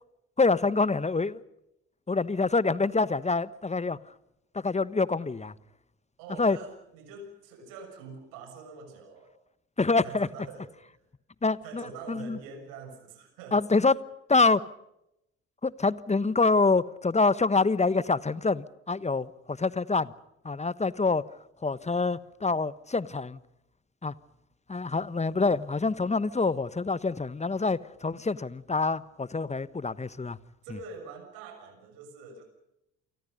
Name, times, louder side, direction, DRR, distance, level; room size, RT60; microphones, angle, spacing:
voice 1, 0.4-1.4 2.1-4.0 4.5-5.5 6.4-6.6 9.8-10.3 11.4-11.8 12.1-12.4 13.5-14.0 14.3-14.6 15.6-20.1 20.4-21.2 21.6-23.4 24.0-24.1 24.7-30.4, left 3 dB, 20° left, 1.2 m, -26 dB
voice 2, 6.2-9.3 10.0-11.0 11.6-13.7 26.4-26.6 30.6-32.4, right 4 dB, 75° right, 6.7 m, -45 dB
29.0 x 24.5 x 5.4 m
hypercardioid pair, 50°, 35 cm